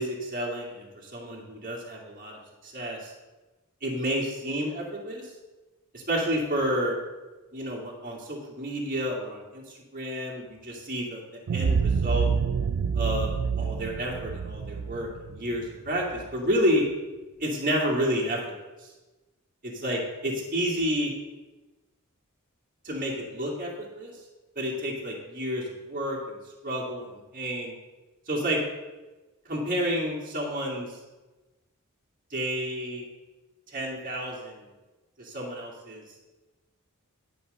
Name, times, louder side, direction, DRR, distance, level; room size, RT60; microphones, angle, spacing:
voice 1, 0.0-3.1 3.8-5.3 5.9-7.0 7.5-11.2 11.5-12.3 12.9-16.8 17.4-18.4 18.8-18.9 19.6-21.1 22.8-24.1 24.6-26.4 26.6-27.0 27.3-27.7 28.3-28.6 29.5-31.0 32.3-33.0 33.7-34.7 35.2-36.0, equal, 40° right, -2 dB, 2.1 m, -30 dB
sound 1, 11.5-16.2, right 6 dB, 60° right, 0.3 m, -27 dB
10.5 x 5.2 x 6.6 m, 1.1 s
head